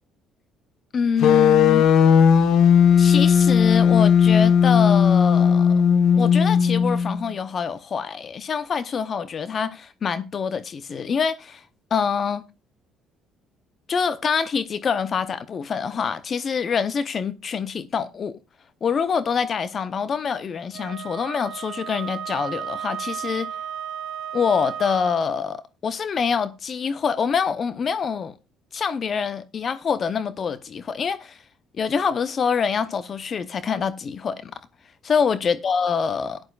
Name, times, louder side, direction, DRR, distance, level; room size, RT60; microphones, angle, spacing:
voice 1, 0.9-1.9 3.0-5.7 6.2-11.6 11.9-12.4 13.9-18.4 18.8-23.5 24.3-28.3 28.7-31.4 31.7-34.5 35.0-36.4, left 6 dB, 45° left, 0.7 m, -25 dB
sound 1, 1.2-7.3, left 7 dB, 70° left, 1.2 m, -16 dB
Wind instrument woodwind instrument, 20.7-25.3, right 9 dB, 80° right, 1.2 m, -34 dB
15.5 x 10.5 x 2.4 m
supercardioid pair, 75°, 0 cm